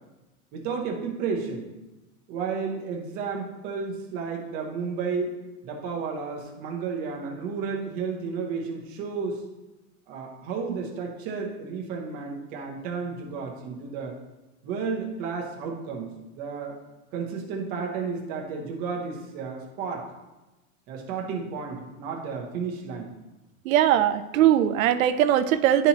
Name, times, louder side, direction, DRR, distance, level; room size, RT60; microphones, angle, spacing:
voice 1, 0.5-1.7 2.3-5.4 5.6-9.4 10.1-14.2 14.6-16.8 17.1-20.1 20.9-23.1, right 5 dB, 20° right, 0 dB, 0.7 m, -32 dB
voice 2, 23.7-25.9, right 11 dB, 65° right, 11 dB, 0.5 m, -20 dB
11.0 x 4.2 x 2.8 m, 1.0 s
supercardioid pair, 170°, 44 cm